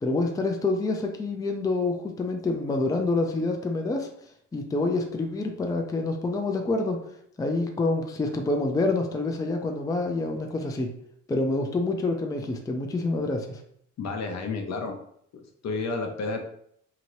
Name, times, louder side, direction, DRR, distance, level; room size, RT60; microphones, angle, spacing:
voice 1, 0.0-4.1 4.5-7.0 7.4-10.9 11.3-13.6, left 2 dB, 10° left, 3 dB, 0.4 m, -27 dB
voice 2, 14.0-14.9 15.6-16.4, left 3 dB, 60° left, 4 dB, 0.7 m, -30 dB
2.8 x 2.6 x 3.0 m, 0.68 s
cardioid pair, 90°, 30 cm